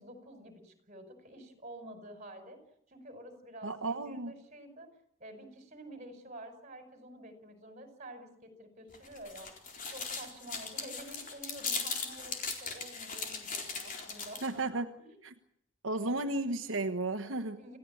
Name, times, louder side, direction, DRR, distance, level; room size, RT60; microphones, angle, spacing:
voice 1, 0.0-2.6 2.9-4.9 5.2-9.6 9.9-15.2 17.6-17.8, right 1 dB, 35° right, 7 dB, 5.7 m, -49 dB
voice 2, 3.6-4.3 14.4-14.9 15.2-15.3 15.8-17.6, right 2 dB, 75° right, 6 dB, 1.3 m, -33 dB
sound 1, 8.9-14.6, left 5 dB, 40° left, 4.2 m, -39 dB
28.0 x 15.5 x 8.7 m, 0.74 s
head